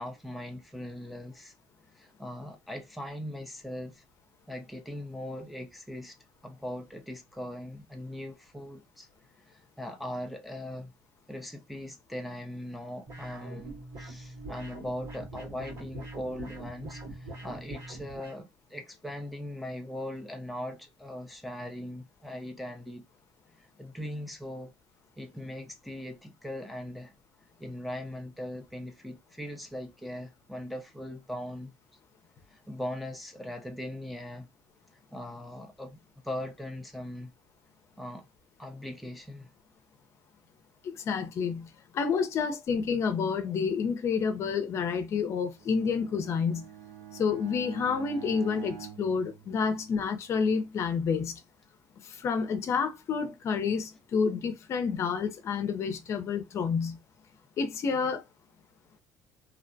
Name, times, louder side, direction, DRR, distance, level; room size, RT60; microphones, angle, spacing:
voice 1, 0.0-1.5 1.9-4.0 4.5-6.2 6.4-9.1 9.5-10.9 11.3-23.1 23.6-24.7 25.2-27.1 27.6-31.7 32.5-34.5 35.1-37.3 38.0-38.2 38.6-39.5, left 1 dB, ahead, 0.5 m, -40 dB
sound 1, 13.1-18.4, right 1 dB, 55° right, 1.5 m, -43 dB
voice 2, 40.8-46.7 47.1-51.4 52.0-57.0 57.6-58.2, left 5 dB, 45° left, 0.5 m, -29 dB
Bowed string instrument, 45.5-50.2, right 9 dB, 75° right, 0.5 m, -46 dB
2.7 x 2.0 x 2.6 m
supercardioid pair, 100°, 6 cm